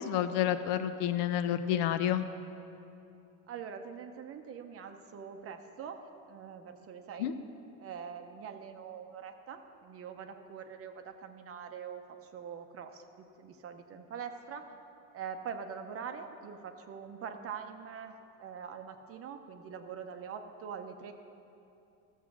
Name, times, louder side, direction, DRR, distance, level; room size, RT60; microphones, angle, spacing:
voice 1, 0.0-2.2 7.2-7.3, left 10 dB, 70° left, 11 dB, 0.8 m, -29 dB
voice 2, 3.5-6.0 6.3-7.3 7.8-14.7 15.1-21.1, right 7 dB, 30° right, 7 dB, 0.7 m, -44 dB
13.5 x 7.3 x 6.1 m, 2.7 s
cardioid pair, 140°, 43 cm